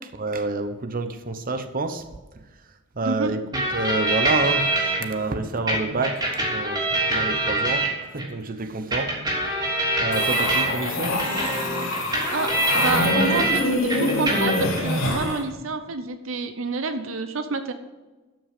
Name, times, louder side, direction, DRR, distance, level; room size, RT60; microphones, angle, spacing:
voice 1, 0.2-2.0 3.0-4.7 5.0-9.1 10.0-11.2, right 3 dB, 45° right, 8 dB, 0.9 m, -28 dB
sound 1, 3.5-5.0 5.7-8.3 8.9-13.6 13.9-14.8, right 2 dB, 20° right, 3.3 m, -25 dB
sound 2, 10.1-15.4, left 2 dB, 70° left, 3.9 m, -25 dB
voice 2, 12.3-17.7, right 4 dB, 75° right, 9 dB, 0.8 m, -28 dB
12.5 x 6.1 x 6.6 m, 1.2 s
head